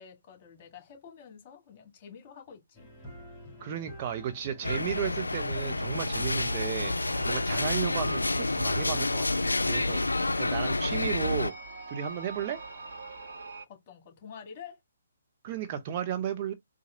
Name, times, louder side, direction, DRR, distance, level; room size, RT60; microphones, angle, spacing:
voice 1, 0.0-2.9 13.7-14.8, left 7 dB, 35° left, 1.9 m, -48 dB
sound 1, 2.7-9.2, left 1 dB, 10° right, 2.4 m, -47 dB
voice 2, 3.6-6.9 7.2-10.0 10.4-11.5 11.9-12.6 15.4-16.5, right 9 dB, 35° right, 0.6 m, -34 dB
sound 2, 4.6-11.5, left 2 dB, 90° left, 0.3 m, -29 dB
sound 3, 5.6-13.6, right 3 dB, 65° right, 1.2 m, -43 dB
4.1 x 2.5 x 2.5 m
figure-of-eight pair, 140°, 0 cm